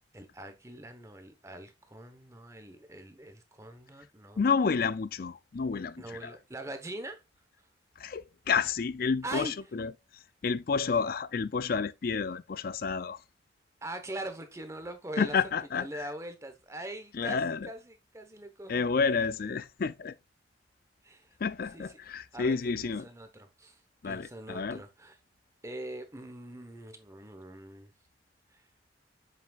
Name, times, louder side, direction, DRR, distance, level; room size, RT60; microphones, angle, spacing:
voice 1, 0.1-4.4 6.0-7.2 9.2-9.6 13.8-15.4 15.8-19.3 21.0-21.4 21.7-22.0 22.3-25.2 25.6-27.9 28.5-28.6, right 1 dB, 15° right, 1.0 m, -42 dB
voice 2, 4.4-6.4 8.0-9.9 10.4-13.2 15.2-16.1 17.1-17.7 18.7-20.1 21.4-23.1 24.0-24.8, left 5 dB, 50° left, 0.4 m, -30 dB
7.5 x 5.8 x 2.4 m
head